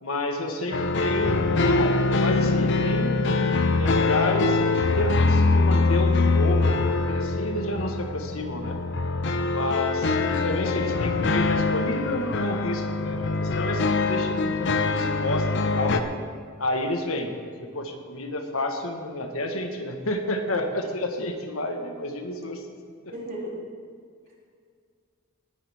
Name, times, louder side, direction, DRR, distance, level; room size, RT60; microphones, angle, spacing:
voice 1, 0.0-3.5 3.8-8.8 9.5-15.9 16.6-22.6 23.0-23.1, left 1 dB, 85° left, 4 dB, 1.6 m, -30 dB
sound 1, 0.7-16.0, left 3 dB, 60° left, 0.8 m, -23 dB
voice 2, 10.6-11.3 15.6-16.1 23.1-23.7, right 1 dB, 45° right, -4 dB, 3.5 m, -37 dB
20.0 x 10.5 x 3.7 m, 2.1 s
head